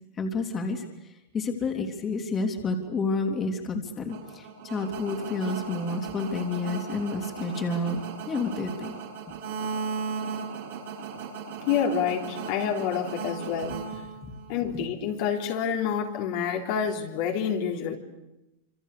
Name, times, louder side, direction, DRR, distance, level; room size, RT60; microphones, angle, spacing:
voice 1, 0.2-8.0 8.3-8.9 14.2-14.3, left 3 dB, 25° left, 3 dB, 3.3 m, -30 dB
sound 1, 4.1-14.5, right 5 dB, 70° right, 6.2 m, -36 dB
voice 2, 11.7-13.8 14.5-18.0, left 7 dB, 55° left, 1 dB, 3.6 m, -28 dB
27.0 x 26.5 x 6.8 m, 0.97 s
hypercardioid pair, 125°, 0 cm